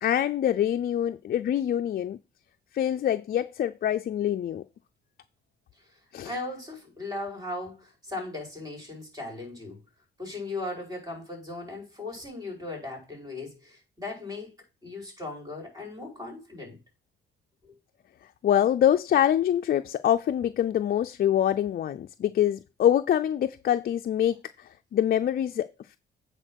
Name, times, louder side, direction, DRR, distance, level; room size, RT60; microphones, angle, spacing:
voice 1, 0.0-2.2 2.7-4.6 6.1-6.3 18.4-26.0, left 10 dB, 50° left, 0.5 m, -25 dB
voice 2, 6.2-9.8 10.2-14.6 14.8-16.8 17.6-17.7, left 2 dB, 20° right, 5.5 m, -38 dB
8.9 x 4.4 x 6.3 m
cardioid pair, 90°, 20 cm